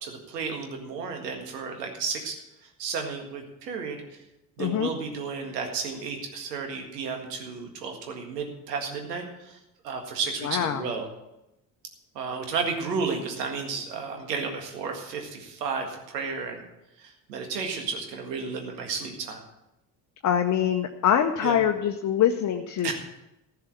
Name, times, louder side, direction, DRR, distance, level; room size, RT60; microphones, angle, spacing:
voice 1, 0.0-4.2 4.6-9.6 9.8-11.1 12.2-16.6 17.0-19.4 21.4-21.6 22.8-22.9, right 5 dB, 75° right, 3 dB, 1.9 m, -33 dB
voice 2, 4.6-4.9 10.4-10.8 20.2-22.9, left 9 dB, 35° left, 5 dB, 0.9 m, -24 dB
15.0 x 5.8 x 8.5 m, 0.91 s
figure-of-eight pair, 55°, 49 cm